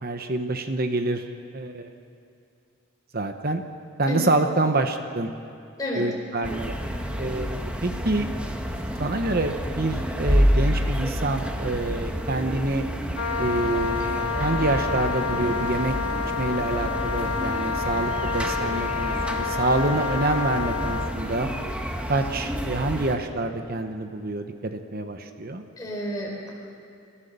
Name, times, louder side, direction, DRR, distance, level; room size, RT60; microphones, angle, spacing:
voice 1, 0.0-1.2 1.5-1.9 3.1-3.6 4.0-5.3 5.9-6.7 7.2-8.3 9.0-12.9 13.4-16.0 16.4-21.5 22.1-25.6, right 2 dB, 45° right, 7 dB, 1.0 m, -27 dB
sound 1, 6.4-23.2, equal, 5° right, 1.2 m, -29 dB
Wind instrument woodwind instrument, 13.2-21.2, left 5 dB, 70° left, 1.2 m, -29 dB
voice 2, 25.8-26.5, equal, 15° left, -3 dB, 4.7 m, -30 dB
28.5 x 14.5 x 6.8 m, 2.5 s
head